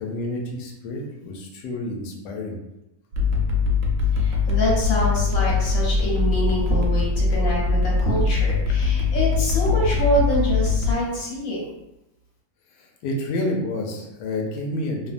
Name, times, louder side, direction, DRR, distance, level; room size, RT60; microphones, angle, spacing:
voice 1, 0.0-2.6 13.0-15.1, left 1 dB, 75° left, 1 dB, 1.1 m, -29 dB
sound 1, 3.1-10.9, left 4 dB, 80° right, 0.7 m, -21 dB
voice 2, 4.1-11.6, equal, 60° left, -4 dB, 1.2 m, -25 dB
2.8 x 2.1 x 2.4 m, 0.92 s
omnidirectional pair, 1.9 m